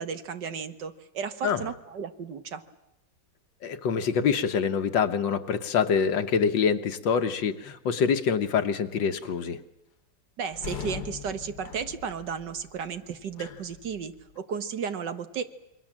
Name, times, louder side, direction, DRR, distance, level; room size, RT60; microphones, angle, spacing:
voice 1, 0.0-2.6 10.4-15.4, right 6 dB, 70° right, 10 dB, 2.0 m, -34 dB
voice 2, 3.6-9.6, left 6 dB, 85° left, 9 dB, 1.9 m, -25 dB
sound 1, 10.5-14.4, left 7 dB, 65° left, 1.6 m, -41 dB
27.0 x 23.0 x 7.5 m, 0.92 s
omnidirectional pair, 1.9 m